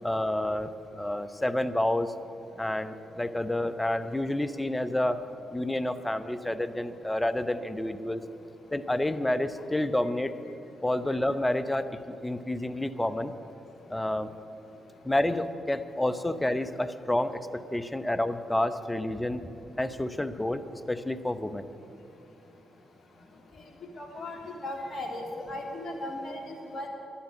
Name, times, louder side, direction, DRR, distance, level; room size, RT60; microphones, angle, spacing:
voice 1, 0.0-2.1 2.5-5.2 5.5-8.2 8.7-10.3 10.8-13.3 13.9-14.3 15.0-19.5 19.8-21.7, left 1 dB, 15° left, 12 dB, 0.9 m, -29 dB
voice 2, 24.0-26.9, left 1 dB, 45° left, 2 dB, 2.9 m, -37 dB
12.0 x 10.0 x 8.8 m, 2.8 s
hypercardioid pair, 40°, 0 cm